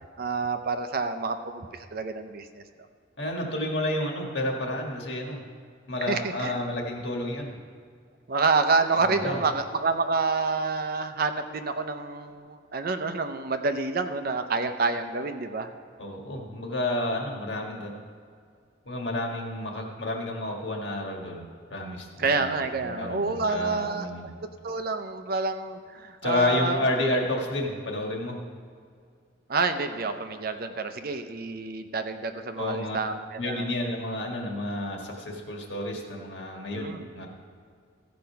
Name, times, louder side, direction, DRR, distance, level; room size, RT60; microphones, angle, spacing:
voice 1, 0.2-2.6 6.1-6.5 8.3-15.7 22.2-24.1 24.6-26.8 29.5-33.7 36.7-37.1, right 4 dB, 50° right, 8 dB, 0.6 m, -28 dB
voice 2, 3.2-5.4 5.9-7.5 9.0-9.4 16.0-17.9 18.8-21.4 21.7-24.3 26.2-28.4 32.6-37.3, left 1 dB, 60° left, 1 dB, 1.7 m, -30 dB
15.0 x 5.2 x 5.7 m, 2.2 s
head